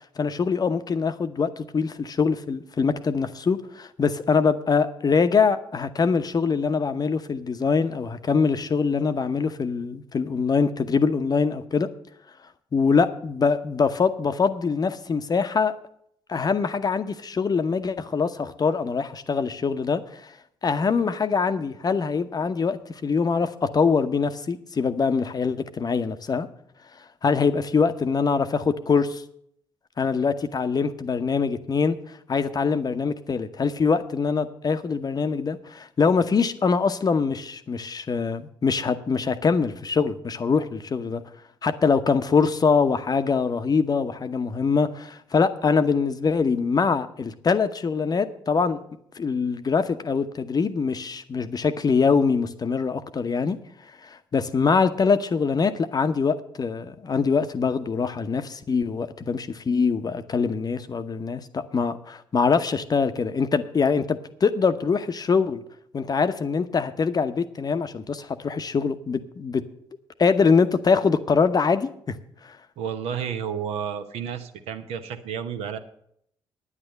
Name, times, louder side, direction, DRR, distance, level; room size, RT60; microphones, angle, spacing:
voice 1, 0.2-11.9 12.7-15.7 16.3-20.3 20.6-26.5 27.2-29.2 30.0-32.0 32.3-41.2 41.6-48.8 49.1-53.6 54.0-65.6 65.9-69.6 70.2-72.2 72.4-72.6, left 5 dB, 35° left, 11 dB, 0.8 m, -23 dB
voice 2, 72.8-75.8, right 8 dB, 60° right, 8 dB, 1.0 m, -31 dB
9.9 x 9.7 x 6.5 m, 0.69 s
figure-of-eight pair, 45°, 12 cm